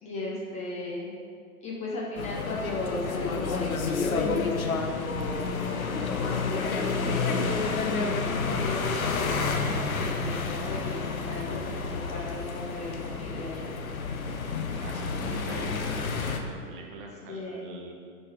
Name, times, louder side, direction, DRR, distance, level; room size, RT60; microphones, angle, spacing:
voice 1, 0.0-1.1 1.6-4.8 5.8-7.4 8.4-13.7 17.3-17.8, left 2 dB, 15° left, -4 dB, 0.9 m, -36 dB
sound 1, 2.2-16.4, left 4 dB, 65° left, 1.0 m, -30 dB
voice 2, 14.8-17.9, right 3 dB, 35° right, 1 dB, 1.3 m, -42 dB
9.0 x 5.5 x 4.8 m, 2.2 s
figure-of-eight pair, 120°, 45 cm